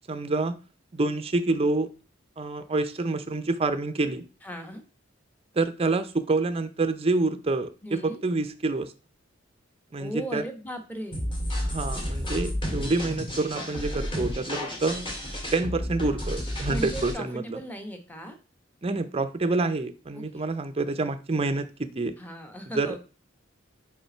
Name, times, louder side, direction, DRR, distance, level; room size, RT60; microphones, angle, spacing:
voice 1, 0.1-0.6 0.9-1.9 2.4-4.2 5.5-8.9 9.9-10.4 11.6-15.1 15.5-17.6 18.8-22.1 22.8-22.9, right 3 dB, 30° right, 9 dB, 0.5 m, -27 dB
voice 2, 4.4-4.8 7.8-8.2 10.0-11.3 16.7-18.4 20.1-20.4 22.2-23.0, right 1 dB, 10° left, 5 dB, 1.0 m, -37 dB
sound 1, 11.1-17.1, equal, 25° left, 2.1 m, -31 dB
5.5 x 5.0 x 4.4 m, 0.34 s
head